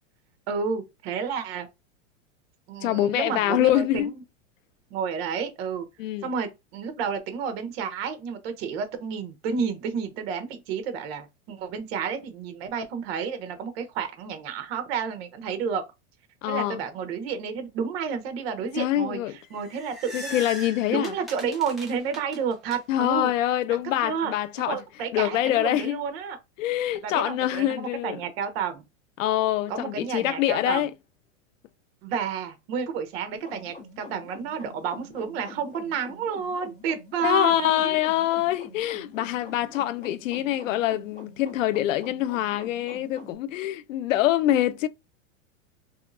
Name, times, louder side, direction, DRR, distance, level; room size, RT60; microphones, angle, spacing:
voice 1, 0.5-1.7 2.7-4.2 4.9-5.8 6.2-15.8 16.4-20.4 20.8-23.3 23.7-26.4 27.0-28.8 29.7-30.8 32.0-38.0, right 6 dB, 50° right, 0.8 m, -31 dB
voice 2, 2.8-4.1 6.0-6.3 16.4-16.8 18.8-19.4 20.1-21.1 22.9-24.8 25.1-26.0 26.6-28.2 29.2-30.9 37.2-44.9, left 13 dB, 85° left, 0.5 m, -25 dB
sound 1, 19.5-22.8, equal, ahead, 0.9 m, -40 dB
sound 2, 33.4-43.4, left 2 dB, 20° left, 1.4 m, -46 dB
3.0 x 2.7 x 2.5 m
supercardioid pair, 150°, 38 cm